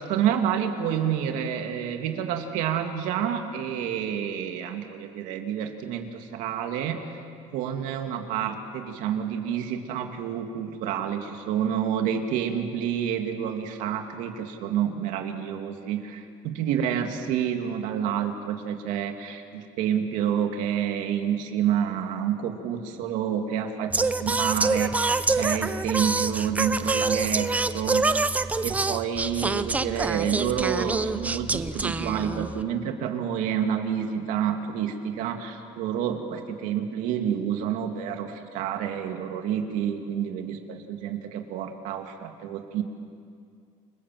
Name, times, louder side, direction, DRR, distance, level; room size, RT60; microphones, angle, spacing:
voice 1, 0.0-7.1 7.5-28.1 28.6-42.8, right 9 dB, 85° right, 4 dB, 2.5 m, -29 dB
Singing, 23.9-32.6, right 3 dB, 10° right, 0.5 m, -26 dB
29.0 x 22.0 x 7.7 m, 2.3 s
cardioid pair, 165°, 13 cm